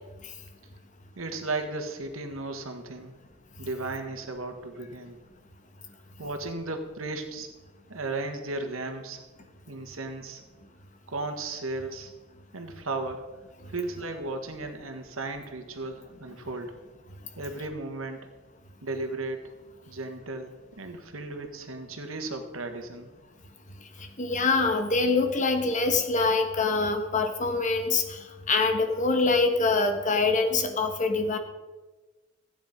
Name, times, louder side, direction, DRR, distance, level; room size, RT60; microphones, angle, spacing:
voice 1, 1.2-3.1 3.6-5.2 6.2-7.5 7.9-9.2 9.7-10.4 11.1-12.1 12.5-13.3 13.7-16.8 17.4-18.2 18.8-19.5 19.9-23.1 24.0-24.1, right 2 dB, 90° right, 5 dB, 1.7 m, -35 dB
voice 2, 24.2-31.4, left 3 dB, 40° left, 6 dB, 1.3 m, -25 dB
14.5 x 9.2 x 5.2 m, 1.2 s
head